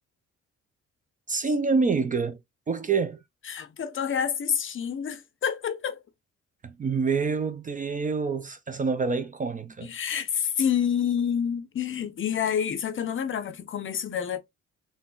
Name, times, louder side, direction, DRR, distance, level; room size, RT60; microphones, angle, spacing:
voice 1, 1.3-2.4 2.7-3.2 6.6-9.9, right 4 dB, 25° right, 0.4 m, -27 dB
voice 2, 3.5-6.0 9.8-14.4, left 8 dB, 45° left, 0.6 m, -28 dB
3.8 x 2.1 x 2.4 m
cardioid pair, 90°, 30 cm